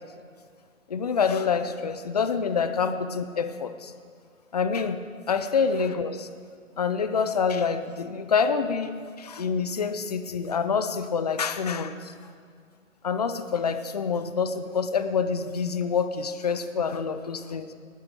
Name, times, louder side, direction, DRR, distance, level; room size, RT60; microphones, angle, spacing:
voice 1, 0.9-3.9 4.5-6.3 6.8-12.1 13.0-17.7, left 6 dB, 30° left, 10 dB, 0.7 m, -27 dB
19.5 x 9.4 x 7.8 m, 2.1 s
figure-of-eight pair, 155°, 42 cm